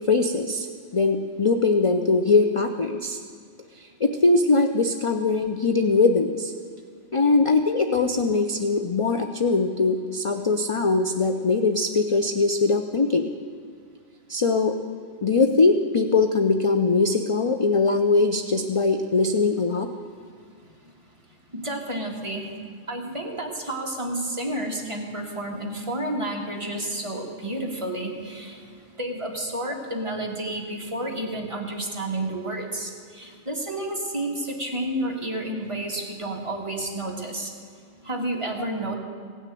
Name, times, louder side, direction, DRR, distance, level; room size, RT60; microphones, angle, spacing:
voice 1, 0.1-0.7 0.9-3.2 3.8-6.5 7.1-13.3 14.3-14.8 15.2-19.9, left 3 dB, 40° left, 6 dB, 0.4 m, -21 dB
voice 2, 21.5-22.5 22.9-28.7 29.0-37.5 38.0-39.0, right 1 dB, 25° right, 0 dB, 1.7 m, -30 dB
16.5 x 6.4 x 9.1 m, 2.1 s
omnidirectional pair, 1.3 m